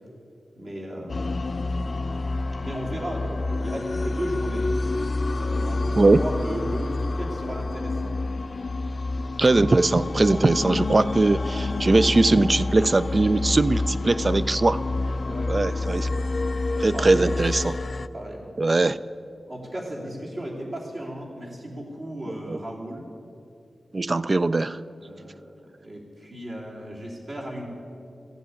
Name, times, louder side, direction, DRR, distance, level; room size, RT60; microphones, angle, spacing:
voice 1, 0.5-1.2 2.6-4.7 5.3-8.1 15.2-15.5 16.9-17.4 18.1-18.5 19.5-23.0 25.0-27.7, right 1 dB, 50° right, -4 dB, 3.0 m, -35 dB
sound 1, 1.1-18.1, left 2 dB, 45° left, 0.4 m, -28 dB
voice 2, 9.4-14.8 15.5-16.1 16.8-17.8 18.6-19.0 22.5-22.6 23.9-24.8, right 2 dB, 35° right, 15 dB, 0.3 m, -20 dB
14.5 x 8.0 x 8.6 m, 2.5 s
wide cardioid pair, 110°, 0 cm